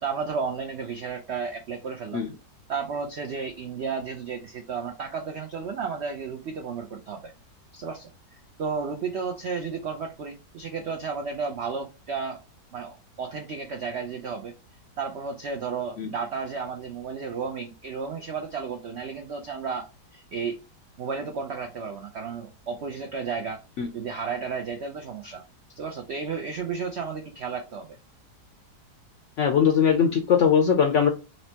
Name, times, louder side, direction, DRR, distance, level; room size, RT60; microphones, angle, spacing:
voice 1, 0.0-2.2 2.7-7.3 7.7-8.1 8.6-12.4 12.7-14.5 15.0-19.9 20.1-20.6 21.0-23.6 23.9-25.4 25.8-28.0, right 5 dB, 75° right, 3 dB, 0.6 m, -33 dB
voice 2, 29.4-31.1, left 7 dB, 65° left, 5 dB, 0.7 m, -20 dB
4.2 x 3.0 x 2.8 m, 0.31 s
omnidirectional pair, 1.8 m